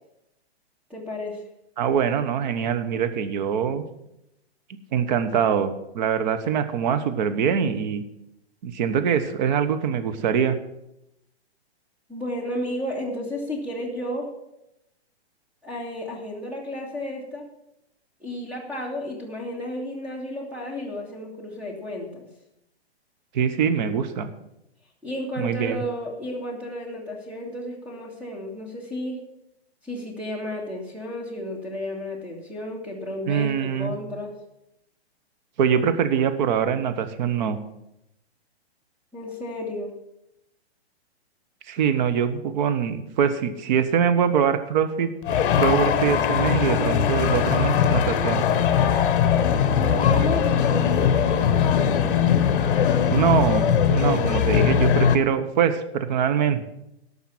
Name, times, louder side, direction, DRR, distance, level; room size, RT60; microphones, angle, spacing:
voice 1, 0.9-1.4 12.1-14.3 15.6-17.4 18.2-22.2 25.0-29.2 29.8-34.3 39.1-39.9 49.8-52.0, left 1 dB, 5° right, -2 dB, 1.9 m, -32 dB
voice 2, 1.8-3.8 4.9-8.0 8.6-10.6 23.3-24.3 25.4-25.8 33.3-33.9 35.6-37.6 41.7-45.1 45.6-48.4 53.1-56.6, right 7 dB, 45° right, 10 dB, 1.1 m, -23 dB
sound 1, 45.2-55.2, left 8 dB, 55° left, 1.0 m, -20 dB
13.5 x 5.6 x 7.3 m, 0.84 s
hypercardioid pair, 150°, 32 cm